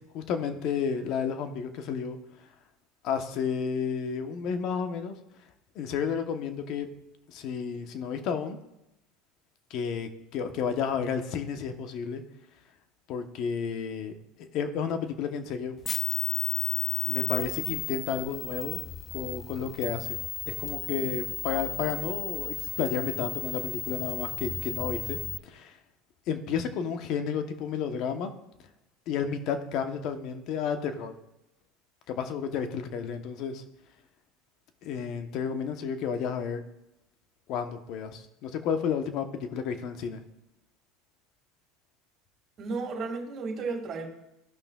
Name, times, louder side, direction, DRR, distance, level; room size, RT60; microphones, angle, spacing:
voice 1, 0.1-2.2 3.0-5.2 5.7-6.9 7.3-8.6 9.7-12.2 13.1-14.1 14.4-15.7 17.0-18.8 19.1-20.1 20.5-25.8 26.3-28.3 29.1-31.1 32.1-33.6 34.8-36.6 37.5-40.2, left 6 dB, 55° left, 7 dB, 1.0 m, -31 dB
sound 1, 15.8-25.4, left 9 dB, 35° left, 0.3 m, -33 dB
voice 2, 42.6-44.1, right 4 dB, 40° right, 0 dB, 2.1 m, -33 dB
14.5 x 5.5 x 2.4 m, 0.87 s
supercardioid pair, 120°, 0 cm